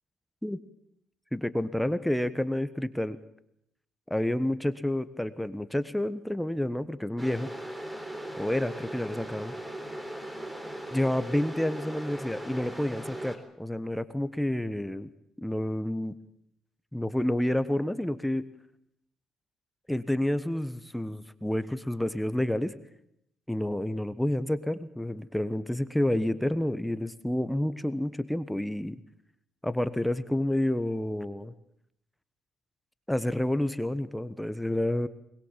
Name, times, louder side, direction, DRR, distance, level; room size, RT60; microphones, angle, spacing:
voice 1, 1.3-3.2 4.1-7.5 8.4-9.5 10.9-15.1 15.4-16.1 16.9-18.4 19.9-22.7 23.5-29.0 29.6-31.5 33.1-35.1, left 1 dB, 5° left, 13 dB, 1.2 m, -29 dB
sound 1, 7.2-13.4, right 1 dB, 10° right, 3.8 m, -39 dB
22.0 x 21.0 x 7.4 m, 0.77 s
cardioid pair, 90°, 0 cm